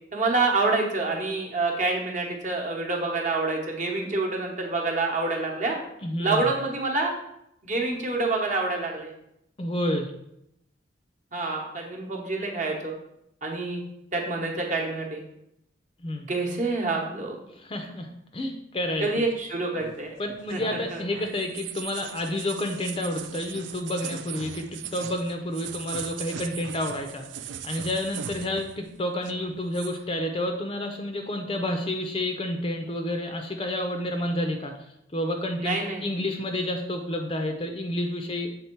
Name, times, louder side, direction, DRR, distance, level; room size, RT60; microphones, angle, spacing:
voice 1, 0.1-5.8 6.2-7.1 7.6-9.1 11.3-12.9 13.4-13.8 14.1-15.2 16.3-17.4 19.0-20.2 20.5-21.3 35.6-36.0, right 3 dB, 40° right, 0 dB, 1.0 m, -27 dB
voice 2, 6.0-6.5 9.6-10.1 16.0-16.3 17.6-19.2 20.2-34.7 35.1-38.5, left 1 dB, 25° left, 4 dB, 0.5 m, -30 dB
sound 1, 19.8-28.9 29.1-30.0, right 10 dB, 65° right, 0.3 m, -39 dB
7.0 x 3.5 x 4.5 m, 0.80 s
head